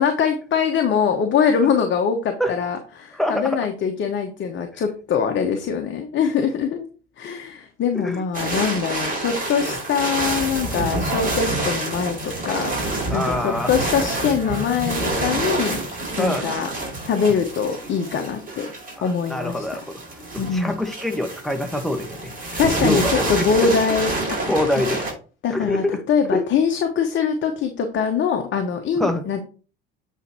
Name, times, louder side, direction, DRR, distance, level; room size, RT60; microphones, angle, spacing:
voice 1, 0.0-6.8 7.2-12.7 13.1-15.8 16.2-16.7 17.0-18.7 19.0-19.6 20.4-20.8 22.6-24.1 25.4-29.4, left 6 dB, 40° left, 4 dB, 1.2 m, -23 dB
voice 2, 3.1-3.6 8.0-8.2 9.7-9.8 10.7-11.1 13.1-13.7 16.2-16.5 19.0-20.0 20.3-22.3 22.8-23.7 24.5-25.0 25.5-26.0 26.3-26.4 29.0-29.2, left 1 dB, ahead, 5 dB, 1.4 m, -25 dB
sound 1, 8.3-25.1, right 2 dB, 25° right, 4.3 m, -28 dB
8.2 x 4.6 x 4.4 m, 0.36 s
figure-of-eight pair, 60°, 31 cm